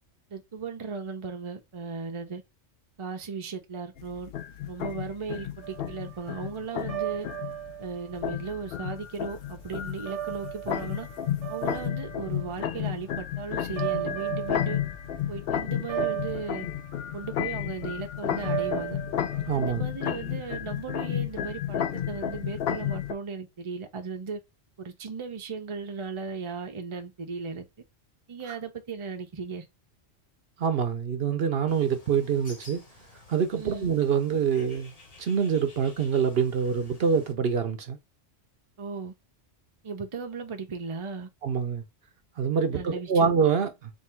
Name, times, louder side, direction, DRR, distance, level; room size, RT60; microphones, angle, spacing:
voice 1, 0.3-2.4 3.0-4.3 4.7-7.3 7.8-11.1 11.5-14.8 15.3-16.7 17.1-19.0 19.5-24.4 24.8-27.7 28.3-29.6 33.6-33.9 38.8-39.1 39.8-41.3 42.7-43.3, right 5 dB, 35° right, 0.6 m, -36 dB
sound 1, 4.0-23.1, left 10 dB, 65° left, 0.7 m, -32 dB
sound 2, 5.6-19.6, right 13 dB, 75° right, 1.2 m, -36 dB
voice 2, 19.5-19.8 30.6-32.8 33.3-34.9 35.2-38.0 41.4-41.8 42.4-43.9, right 6 dB, 60° right, 0.8 m, -25 dB
Bird, 31.7-37.3, left 3 dB, 35° left, 1.0 m, -52 dB
3.6 x 2.7 x 4.3 m
omnidirectional pair, 1.2 m